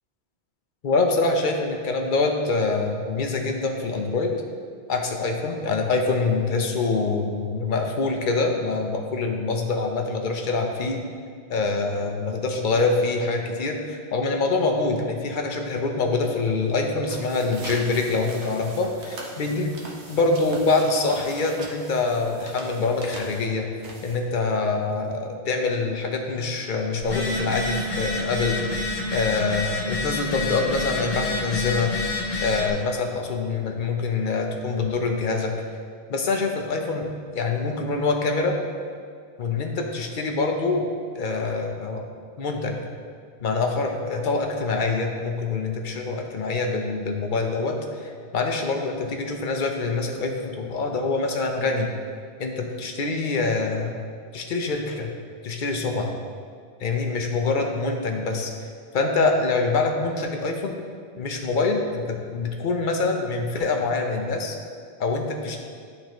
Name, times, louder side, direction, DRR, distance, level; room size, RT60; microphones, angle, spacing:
voice 1, 0.8-4.3 4.9-11.0 11.5-19.7 20.1-23.7 24.0-28.6 29.1-31.9 32.4-35.5 36.1-37.1 37.3-38.6 39.4-40.9 41.1-42.1 42.4-42.8 43.4-51.9 52.4-53.9 54.3-55.1 55.4-56.2 56.8-58.5 58.9-60.8 61.2-64.6 65.0-65.6, left 3 dB, 55° left, 3 dB, 0.8 m, -25 dB
sound 1, 16.9-24.5, right 2 dB, 85° right, 1.2 m, -41 dB
Telephone, 27.0-32.7, left 2 dB, 85° left, 1.4 m, -28 dB
11.0 x 3.9 x 3.0 m, 2.1 s
omnidirectional pair, 1.1 m